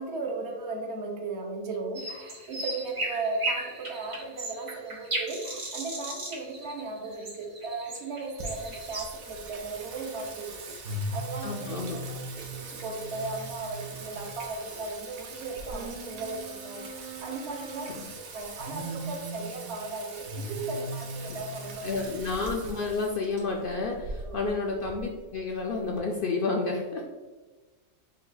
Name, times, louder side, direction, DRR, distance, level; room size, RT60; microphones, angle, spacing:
voice 1, 0.0-21.9 24.2-24.6, right 3 dB, 60° right, 2 dB, 0.9 m, -37 dB
sound 1, 1.9-9.0, right 2 dB, 35° right, 0.5 m, -36 dB
Singing, 8.4-26.0, right 2 dB, 80° right, 1.2 m, -39 dB
voice 2, 11.4-12.0 17.9-18.1 21.3-21.4 21.8-27.0, left 3 dB, 70° left, 0 dB, 0.5 m, -30 dB
5.2 x 2.2 x 3.9 m, 1.2 s
omnidirectional pair, 1.4 m